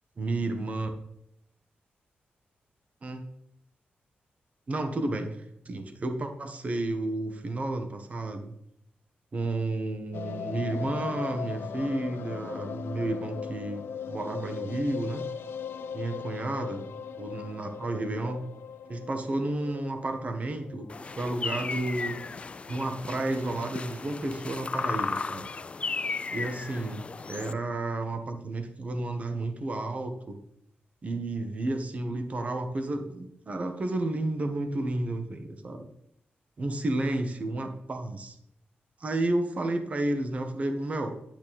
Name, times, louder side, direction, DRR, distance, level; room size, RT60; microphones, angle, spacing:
voice 1, 0.2-0.9 3.0-3.3 4.7-5.4 5.6-8.5 9.3-15.2 15.9-16.9 17.2-18.4 18.9-22.2 22.7-25.5 26.3-30.4 31.0-35.9 36.6-38.3 39.0-41.2, right 2 dB, 40° right, 6 dB, 1.3 m, -31 dB
sound 1, 10.1-22.3 22.5-22.6 22.9-23.0 23.2-23.3, left 7 dB, 90° left, 0.8 m, -39 dB
sound 2, 20.9-27.5, left 4 dB, 30° left, 0.4 m, -35 dB
10.5 x 9.1 x 4.2 m, 0.74 s
wide cardioid pair, 130°, 4 cm